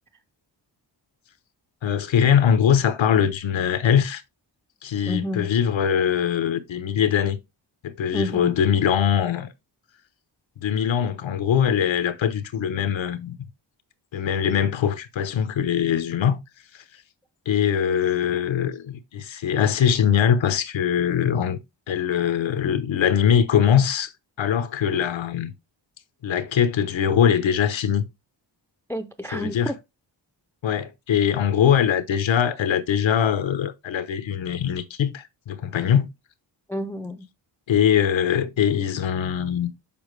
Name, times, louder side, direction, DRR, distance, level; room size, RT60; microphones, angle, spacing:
voice 1, 1.8-4.2 4.8-7.4 7.8-9.5 10.6-13.4 14.1-16.4 16.7-16.8 17.5-21.6 21.9-24.1 24.4-25.5 26.2-28.0 29.3-29.7 30.6-36.1 37.7-39.7, left 8 dB, 85° left, 0.9 m, -22 dB
voice 2, 5.1-5.5 8.1-8.5 28.9-29.7 36.7-37.3, left 1 dB, 5° left, 0.4 m, -29 dB
7.1 x 5.2 x 3.2 m
wide cardioid pair, 130°, 44 cm